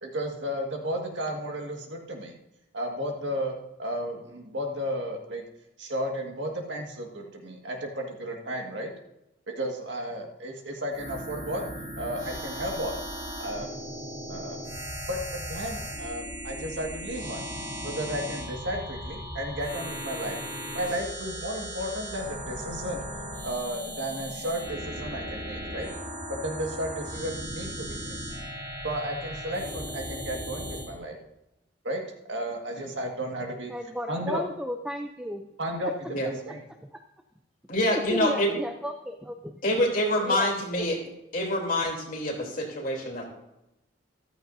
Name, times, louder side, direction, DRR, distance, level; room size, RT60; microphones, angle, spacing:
voice 1, 0.0-2.3 2.7-5.4 5.8-8.9 9.5-11.6 12.0-13.0 13.4-13.7 14.3-14.6 15.1-17.4 17.8-20.4 20.7-23.1 23.4-25.9 26.3-28.2 28.8-31.2 31.8-32.0 32.3-33.7 34.1-34.4 35.6-35.9 36.2-36.6, equal, 65° right, 1 dB, 1.8 m, -33 dB
sound 1, 10.9-30.9, equal, 25° right, 2.7 m, -37 dB
voice 2, 33.7-35.5 35.8-35.9 36.8-37.0 37.9-39.6 40.2-40.5 40.8-40.9, equal, 5° right, 5 dB, 0.5 m, -34 dB
voice 3, 37.7-38.5 39.6-41.0 41.3-43.3, left 1 dB, 45° left, -2 dB, 3.3 m, -26 dB
14.0 x 13.0 x 2.7 m, 0.90 s
head